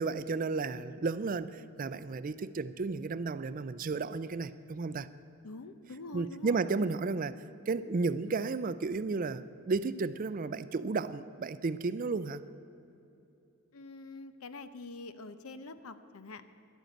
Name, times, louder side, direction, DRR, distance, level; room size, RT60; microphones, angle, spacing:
voice 1, 0.0-5.1 6.1-7.4 7.7-12.4, right 4 dB, 40° right, 0.4 m, -33 dB
voice 2, 5.4-6.6 13.7-16.4, left 2 dB, 80° left, 0.7 m, -45 dB
11.5 x 9.2 x 9.0 m
head